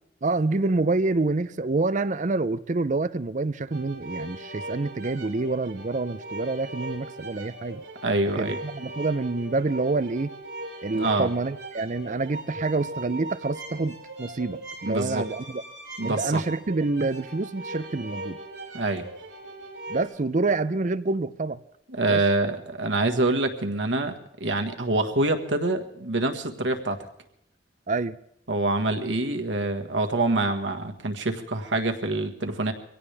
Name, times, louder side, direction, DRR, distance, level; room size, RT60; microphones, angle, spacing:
voice 1, 0.2-7.8 8.3-10.3 10.8-15.6 16.0-18.4 19.9-21.6 22.1-22.2 27.9-28.2, right 3 dB, 45° right, 14 dB, 0.6 m, -27 dB
sound 1, 3.7-20.0, right 1 dB, 70° right, 3.8 m, -39 dB
voice 2, 8.0-8.6 10.9-11.3 14.8-15.2 16.0-16.4 18.7-19.0 21.9-24.1 24.4-27.0 28.5-32.7, right 2 dB, 90° right, 5 dB, 1.6 m, -25 dB
23.5 x 17.0 x 3.4 m, 0.77 s
head